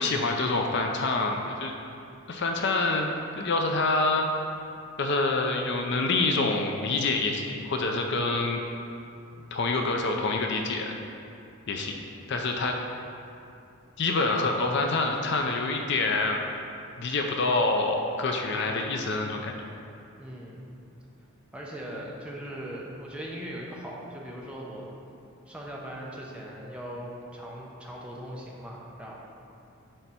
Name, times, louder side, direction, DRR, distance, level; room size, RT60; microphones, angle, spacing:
voice 1, 0.0-1.7 2.3-4.3 5.0-8.6 9.5-10.9 11.7-11.9 12.3-12.8 14.0-16.4 17.0-19.5, left 3 dB, 55° left, 3 dB, 0.5 m, -26 dB
voice 2, 20.2-20.8 21.5-24.9 25.5-29.1, equal, 5° right, -4 dB, 0.7 m, -39 dB
10.0 x 3.4 x 4.3 m, 2.6 s
head